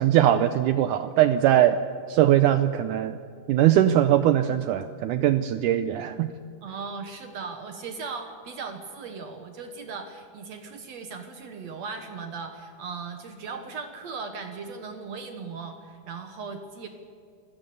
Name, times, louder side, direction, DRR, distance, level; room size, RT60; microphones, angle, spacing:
voice 1, 0.0-1.8 2.1-3.2 3.5-6.3, right 12 dB, 80° right, 11 dB, 1.9 m, -21 dB
voice 2, 6.6-16.9, right 5 dB, 60° right, 6 dB, 2.0 m, -38 dB
27.5 x 16.0 x 6.9 m, 2.4 s
omnidirectional pair, 4.2 m